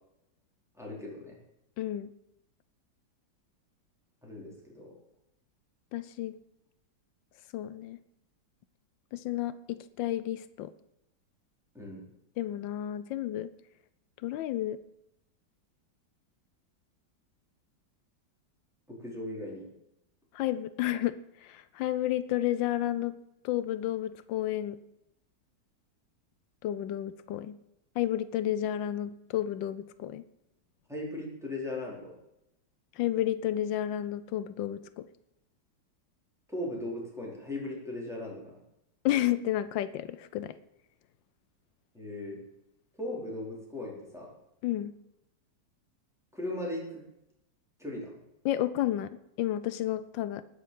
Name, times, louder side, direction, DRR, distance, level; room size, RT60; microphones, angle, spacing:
voice 1, 0.8-1.4 4.2-4.9 11.7-12.0 18.9-19.7 30.9-32.1 36.5-38.6 41.9-42.4 43.0-44.3 46.3-47.0 47.8-48.2, left 1 dB, ahead, -4 dB, 4.4 m, -38 dB
voice 2, 1.8-2.1 5.9-6.4 7.5-8.0 9.1-10.7 12.4-13.5 14.2-14.8 20.3-23.1 23.4-24.8 26.6-27.6 28.0-30.2 33.0-35.1 39.0-40.5 44.6-45.0 48.4-50.4, left 13 dB, 85° left, 14 dB, 1.4 m, -31 dB
19.5 x 6.7 x 7.3 m, 0.85 s
omnidirectional pair, 2.0 m